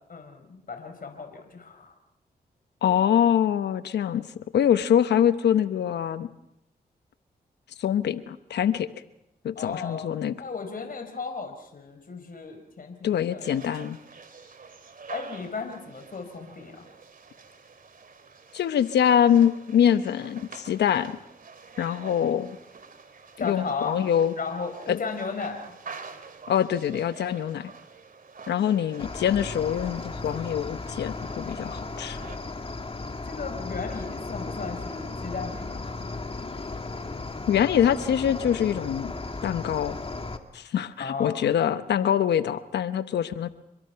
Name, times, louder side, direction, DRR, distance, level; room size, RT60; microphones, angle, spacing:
voice 1, 0.1-1.9 9.5-10.1 10.4-13.4 15.1-16.9 23.4-24.0 24.4-25.7 33.0-36.1 41.0-41.4, left 5 dB, 55° left, 5 dB, 4.7 m, -35 dB
voice 2, 2.8-4.2 4.5-6.3 7.8-8.9 9.4-10.4 13.0-14.0 18.5-21.2 21.8-22.6 23.4-24.3 24.9-25.0 26.5-27.7 28.5-32.2 37.5-39.1 39.4-40.0 40.5-43.5, left 9 dB, 90° left, 12 dB, 1.0 m, -24 dB
sound 1, 13.4-32.4, right 5 dB, 55° right, 2.7 m, -47 dB
Cricket, 29.0-40.4, left 3 dB, 35° left, 2.5 m, -35 dB
29.5 x 23.0 x 5.8 m, 0.81 s
cardioid pair, 55°, 17 cm